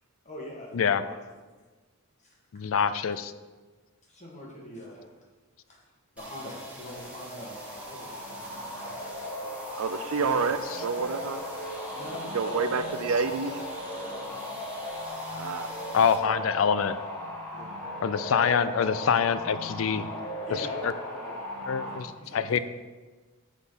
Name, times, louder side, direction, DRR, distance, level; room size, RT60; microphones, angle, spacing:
voice 1, 0.2-1.2 2.2-2.3 4.1-5.0 5.7-5.8 6.1-9.7 11.9-12.7 14.0-14.4 17.5-17.8 20.5-22.6, left 1 dB, 30° left, -2 dB, 1.8 m, -43 dB
voice 2, 2.5-3.3 15.9-17.0 18.0-20.1 20.8-20.9 21.7-22.6, left 7 dB, 65° left, 13 dB, 0.4 m, -25 dB
sound 1, 6.2-22.0, left 1 dB, 10° left, 1.7 m, -37 dB
sound 2, 6.2-16.2, right 1 dB, 5° right, 1.3 m, -47 dB
voice 3, 9.8-11.5 12.3-13.8 15.3-15.7, right 4 dB, 75° right, 10 dB, 0.5 m, -29 dB
6.1 x 5.5 x 5.8 m, 1.3 s
head